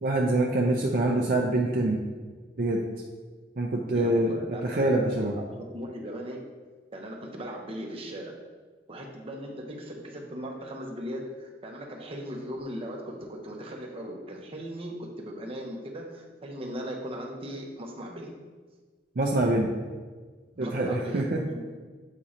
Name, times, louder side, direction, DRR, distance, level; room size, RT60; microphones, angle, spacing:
voice 1, 0.0-2.0 2.6-2.8 3.6-4.4 4.6-5.4 19.2-19.7 20.6-21.4, right 2 dB, 55° right, 0 dB, 0.5 m, -25 dB
voice 2, 3.9-4.9 5.2-6.4 6.9-8.3 8.9-18.3 20.6-21.8, equal, 35° right, 0 dB, 0.8 m, -38 dB
7.4 x 2.8 x 4.9 m, 1.4 s
head